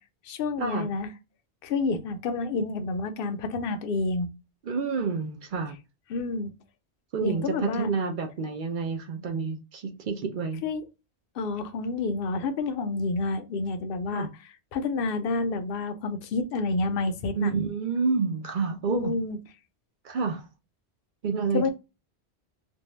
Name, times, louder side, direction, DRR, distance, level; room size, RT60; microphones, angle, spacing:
voice 1, 0.2-1.1 1.6-4.3 6.1-6.5 7.2-7.9 10.6-10.8 11.4-14.3 14.7-17.5 18.9-19.4 21.5-21.7, left 3 dB, 65° left, 0.7 m, -29 dB
voice 2, 4.6-5.8 7.1-10.6 14.1-14.3 17.4-19.1 20.0-20.5 21.2-21.7, right 5 dB, 55° right, 0.6 m, -29 dB
2.6 x 2.2 x 3.0 m
omnidirectional pair, 1.1 m